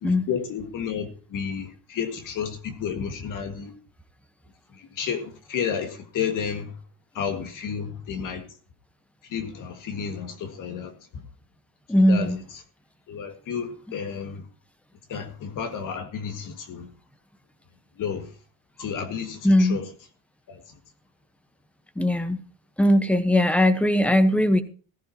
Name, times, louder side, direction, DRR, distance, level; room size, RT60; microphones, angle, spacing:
voice 1, 0.0-3.7 4.7-6.7 7.2-8.4 9.3-11.2 12.1-12.3 13.1-14.4 15.1-16.9 18.0-18.3 18.8-19.8 20.5-20.6, left 7 dB, 50° left, 1.8 m, -31 dB
voice 2, 11.9-12.4 19.4-19.8 22.0-22.4 22.8-24.6, left 1 dB, 5° left, 1.0 m, -19 dB
14.5 x 14.5 x 2.9 m
cardioid pair, 125°, 42 cm